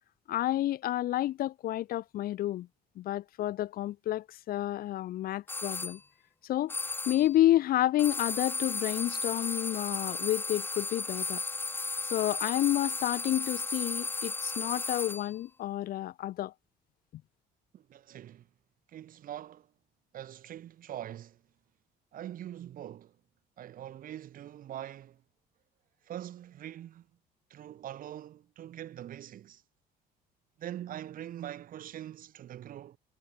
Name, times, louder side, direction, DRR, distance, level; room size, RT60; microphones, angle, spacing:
voice 1, 0.3-2.7 3.0-6.0 6.4-6.7 7.1-11.4 12.1-16.5, left 14 dB, 60° left, 0.7 m, -30 dB
sound 1, 5.5-6.0 6.7-7.3 8.0-15.4, left 3 dB, 10° left, 0.6 m, -35 dB
voice 2, 17.7-18.5 18.9-19.7 20.1-21.4 22.1-23.1 23.6-25.2 26.0-27.1 27.5-29.6 30.6-33.0, right 11 dB, 55° right, 1.1 m, -43 dB
cardioid pair, 110°, 17 cm